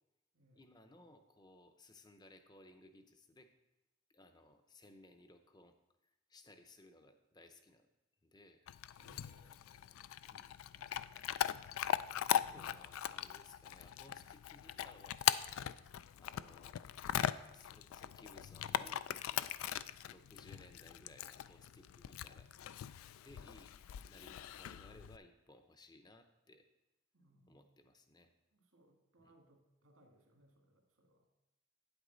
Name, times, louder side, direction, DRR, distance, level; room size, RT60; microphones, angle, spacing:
voice 1, 0.5-3.5 4.1-5.8 6.3-7.9 8.2-8.7 10.2-10.6 12.3-15.2 16.2-16.8 17.1-19.5 20.1-22.5 23.2-23.8 24.0-26.7 27.5-28.3 29.2-29.3, left 2 dB, 20° left, 7 dB, 0.6 m, -61 dB
Chewing mastication / Dog, 8.7-25.2, left 10 dB, 85° left, 0.3 m, -40 dB
voice 2, 8.9-10.4 10.7-11.8 27.1-27.7 28.5-31.3, right 1 dB, 90° right, 1 dB, 1.9 m, -69 dB
9.5 x 8.1 x 3.9 m, 0.97 s
head